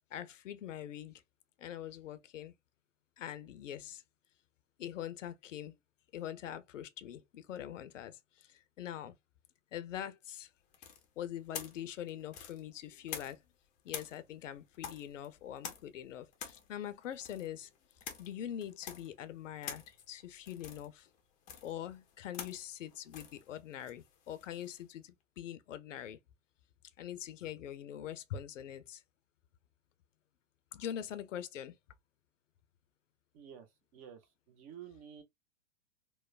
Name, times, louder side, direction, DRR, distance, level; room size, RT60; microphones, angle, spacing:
voice 1, 0.1-1.2 1.6-2.5 3.2-4.0 4.8-5.8 6.1-9.2 9.7-10.5 10.8-10.9 11.2-13.4 13.8-17.7 18.2-21.1 21.6-26.2 27.0-29.0 30.7-31.8, left 10 dB, 70° left, 0.6 m, -43 dB
sound 1, 10.7-13.6 13.9-24.8, left 8 dB, 20° left, 0.5 m, -48 dB
voice 2, 33.3-33.7 33.9-35.2, right 9 dB, 30° right, 0.5 m, -51 dB
3.0 x 2.0 x 2.3 m
hypercardioid pair, 115°, 39 cm